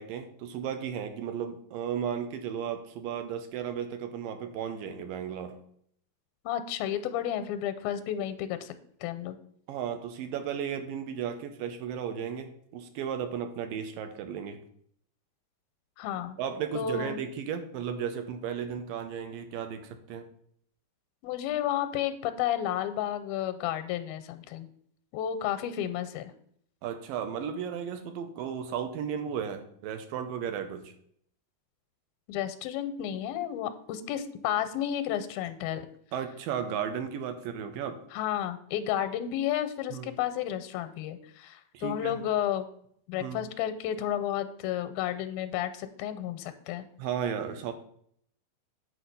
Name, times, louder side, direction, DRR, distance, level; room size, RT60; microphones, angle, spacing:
voice 1, 0.0-5.6 9.7-14.6 16.4-20.3 26.8-30.9 36.1-38.0 39.9-40.1 41.7-42.2 43.2-43.4 47.0-47.7, right 8 dB, 80° right, 8 dB, 2.4 m, -34 dB
voice 2, 6.5-8.7 9.0-9.4 16.0-16.4 16.7-17.2 21.2-24.7 25.1-26.3 32.3-35.9 38.1-42.7 43.1-46.9, left 10 dB, 85° left, 11 dB, 2.5 m, -32 dB
9.0 x 4.5 x 6.8 m, 0.65 s
omnidirectional pair, 4.3 m